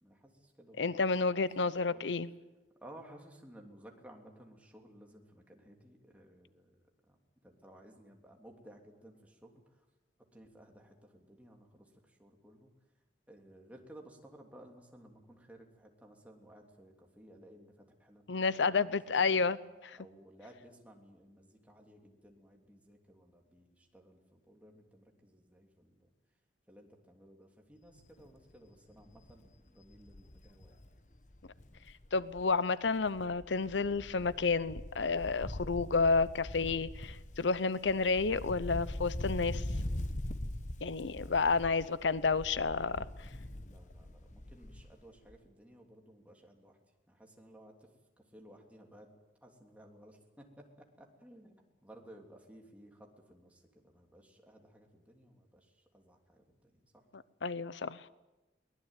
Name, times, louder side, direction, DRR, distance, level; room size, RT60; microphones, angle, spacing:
voice 1, 0.0-2.0 2.8-6.7 7.1-7.2 7.4-9.5 10.3-12.7 13.3-18.2 18.5-18.8 19.1-19.4 19.9-25.9 26.7-30.8 41.0-41.3 41.7-41.9 43.6-46.8 47.1-47.7 48.3-49.1 49.4-57.0, right 1 dB, 10° right, 3.2 m, -57 dB
voice 2, 0.8-2.3 18.3-20.0 32.1-39.6 40.8-43.1 57.1-58.1, left 4 dB, 85° left, 0.8 m, -31 dB
Wind, 28.0-28.3 28.6-28.7 29.0-32.6 32.9-45.0 45.3-45.4, left 1 dB, 40° left, 1.2 m, -42 dB
23.0 x 19.5 x 9.2 m
head